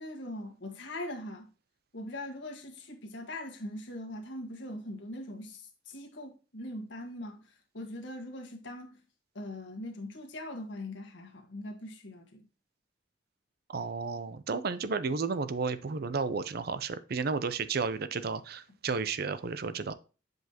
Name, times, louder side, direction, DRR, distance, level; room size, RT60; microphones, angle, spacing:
voice 1, 0.0-1.5 1.9-9.0 9.3-12.4, left 1 dB, 85° left, 1.5 m, -41 dB
voice 2, 13.7-19.9, right 4 dB, 55° right, 0.5 m, -32 dB
8.0 x 5.2 x 2.9 m
head